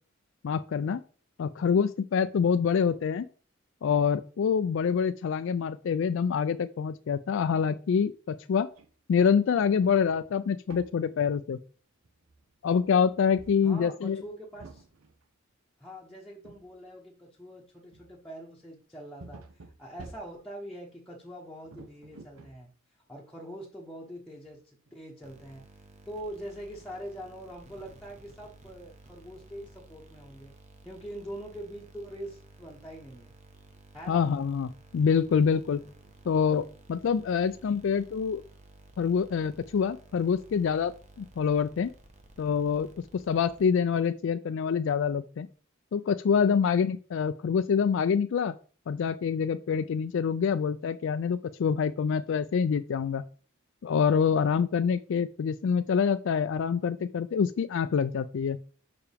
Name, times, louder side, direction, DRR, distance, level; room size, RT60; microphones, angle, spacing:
voice 1, 0.4-1.0 1.4-3.3 3.8-8.7 9.1-11.6 12.6-14.2 34.1-35.8 36.3-38.4 39.0-40.9 41.2-41.9 42.4-42.9 43.3-45.5 45.9-48.5 48.9-53.2 53.8-58.6, left 6 dB, 65° left, 12 dB, 0.3 m, -26 dB
sound 1, 8.7-8.9 9.2-11.0 12.0-13.7 14.2-15.2 15.8-15.9 16.4-16.9 17.9-18.1 19.2-20.5 21.6-22.6 24.2-24.6 24.9-25.0 25.8-25.9 26.3-26.4 26.9-27.0, right 2 dB, 85° right, 0.8 m, -51 dB
voice 2, 13.6-14.8 15.8-22.7 23.1-24.6 24.9-25.6 26.1-30.5 30.8-33.3 33.9-34.3, equal, 5° left, -5 dB, 0.9 m, -43 dB
sound 2, 25.2-44.0, right 2 dB, 35° right, 1.0 m, -55 dB
6.8 x 5.7 x 3.4 m, 0.39 s
head